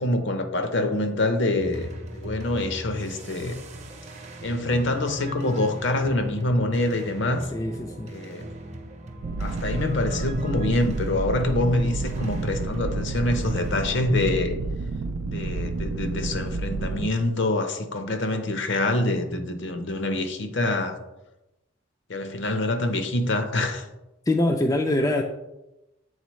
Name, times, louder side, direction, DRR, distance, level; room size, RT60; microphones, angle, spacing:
voice 1, 0.0-3.6 4.4-7.5 8.1-8.5 9.4-14.6 15.2-21.0 22.1-23.9, left 2 dB, 60° left, 7 dB, 0.7 m, -25 dB
sound 1, 1.6-14.1, right 1 dB, 35° right, 0.7 m, -40 dB
voice 2, 7.5-8.1 24.3-25.2, left 1 dB, 15° left, 3 dB, 0.3 m, -23 dB
sound 2, 9.2-17.1, right 3 dB, 85° right, 0.4 m, -30 dB
8.1 x 3.9 x 3.1 m, 0.96 s
head